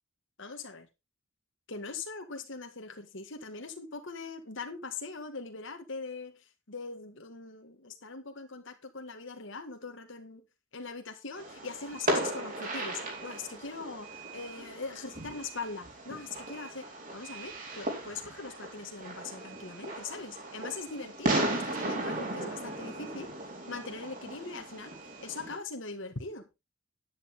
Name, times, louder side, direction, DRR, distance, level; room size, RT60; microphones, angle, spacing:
voice 1, 0.4-0.9 1.7-6.3 6.7-10.4 10.7-23.3 23.7-24.9 25.2-26.5, left 4 dB, 65° left, 1.9 m, -41 dB
Fireworks, 11.4-25.6, right 1 dB, 40° right, 4.3 m, -36 dB
10.5 x 9.7 x 3.6 m
head